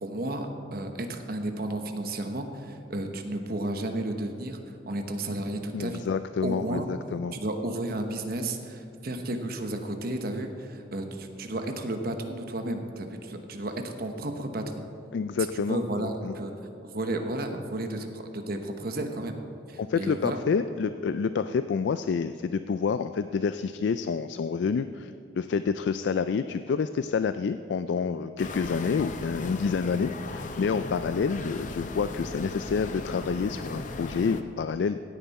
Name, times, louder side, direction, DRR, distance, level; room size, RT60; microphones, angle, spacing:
voice 1, 0.0-6.0 6.4-6.9 7.3-14.8 15.5-16.5 16.8-19.4 19.7-20.4, right 1 dB, 55° right, 5 dB, 1.1 m, -33 dB
voice 2, 5.7-7.4 15.1-16.3 19.8-35.0, left 5 dB, 65° left, 11 dB, 0.3 m, -28 dB
sound 1, 28.4-34.4, left 2 dB, 40° left, 0.7 m, -37 dB
16.0 x 9.3 x 4.2 m, 2.7 s
head